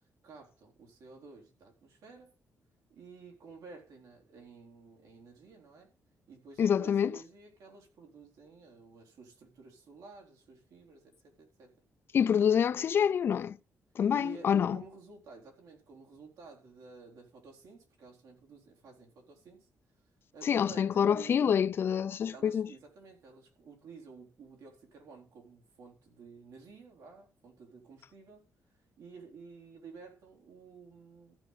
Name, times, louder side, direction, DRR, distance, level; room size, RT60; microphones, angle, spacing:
voice 1, 0.2-2.3 2.9-5.9 6.3-11.7 14.1-19.7 20.3-21.6 22.3-28.4 29.0-31.4, right 4 dB, 75° right, 4.0 m, -52 dB
voice 2, 6.6-7.1 12.1-13.6 14.0-14.8 20.4-22.7, left 8 dB, 40° left, 0.4 m, -26 dB
14.5 x 5.5 x 5.7 m
wide cardioid pair, 170°, 6 cm